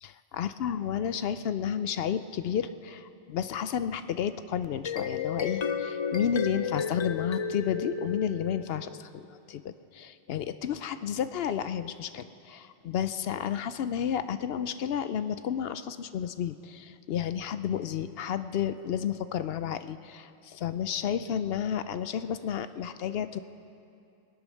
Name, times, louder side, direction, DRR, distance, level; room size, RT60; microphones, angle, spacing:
voice 1, 0.0-23.4, left 9 dB, 70° left, 12 dB, 0.8 m, -31 dB
sound 1, 4.6-9.0, left 6 dB, 35° left, 0.5 m, -33 dB
22.5 x 8.4 x 6.4 m, 2.5 s
omnidirectional pair, 1.1 m